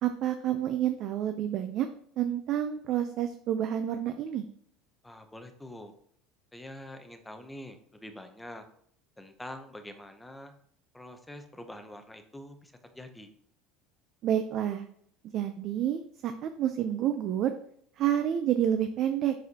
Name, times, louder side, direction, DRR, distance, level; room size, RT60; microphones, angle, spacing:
voice 1, 0.0-1.9 2.2-4.4 14.2-14.9 15.3-17.5 18.0-19.3, right 10 dB, 40° right, 8 dB, 0.4 m, -29 dB
voice 2, 5.0-5.9 6.5-8.6 9.2-10.5 10.9-13.3, left 1 dB, 5° left, 6 dB, 0.6 m, -45 dB
7.4 x 6.2 x 2.8 m, 0.66 s
cardioid pair, 175°, 0 cm